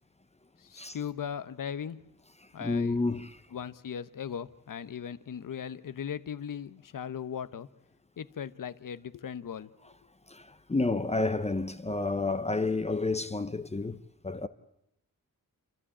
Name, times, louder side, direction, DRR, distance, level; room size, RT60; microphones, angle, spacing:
voice 1, 0.6-2.0 2.5-3.0 3.5-7.7 8.2-9.7, left 8 dB, 70° left, 0.9 m, -38 dB
voice 2, 2.6-3.4 10.3-14.0 14.2-14.5, left 3 dB, 20° left, 0.7 m, -30 dB
29.0 x 12.5 x 8.6 m
wide cardioid pair, 160°, 34 cm